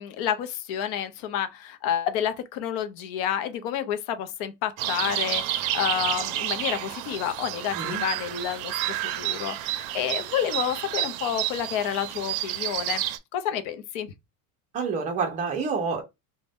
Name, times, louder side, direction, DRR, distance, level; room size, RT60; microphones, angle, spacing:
voice 1, 0.0-13.0 13.3-14.1, left 9 dB, 55° left, 0.5 m, -29 dB
sound 1, 4.8-13.2, right 13 dB, 90° right, 0.5 m, -30 dB
voice 2, 14.7-16.0, right 5 dB, 20° right, 0.5 m, -28 dB
2.5 x 2.1 x 3.3 m
cardioid pair, 175°, 39 cm